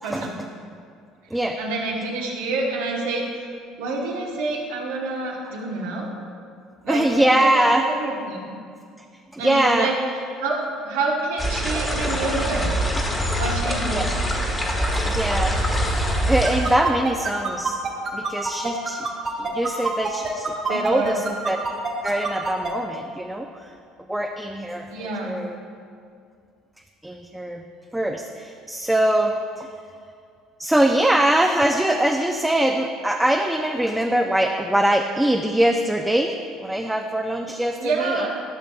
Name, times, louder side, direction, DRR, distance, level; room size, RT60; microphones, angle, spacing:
voice 1, 0.0-0.4 1.6-3.5 3.8-6.1 6.8-8.6 9.4-9.9 10.4-12.7 13.4-14.1 20.7-21.1 24.9-25.4 37.8-38.3, right 3 dB, 85° right, -2 dB, 1.2 m, -28 dB
voice 2, 6.9-7.9 9.3-9.9 13.3-13.4 13.9-14.1 14.7-15.6 15.9-17.8 18.1-19.1 19.4-21.6 22.0-23.7 24.1-25.6 27.0-27.6 27.9-29.7 30.6-38.3, right 1 dB, 5° right, 3 dB, 0.4 m, -23 dB
sound 1, 11.4-16.7, equal, 15° left, 1.3 m, -24 dB
sound 2, 16.4-22.7, right 4 dB, 40° right, 1.7 m, -26 dB
12.0 x 5.7 x 2.4 m, 2.3 s
supercardioid pair, 80°, 0 cm